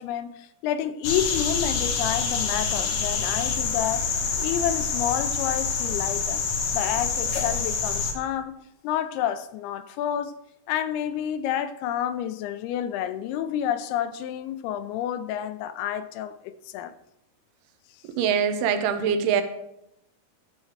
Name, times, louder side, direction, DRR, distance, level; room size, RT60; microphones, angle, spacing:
voice 1, 0.0-6.4 6.7-10.3 10.7-16.9, left 10 dB, 85° left, 2.5 m, -29 dB
sound 1, 1.0-8.1, left 5 dB, 70° left, 1.7 m, -27 dB
voice 2, 18.2-19.4, right 7 dB, 90° right, 2.7 m, -23 dB
12.0 x 7.4 x 3.3 m
omnidirectional pair, 4.6 m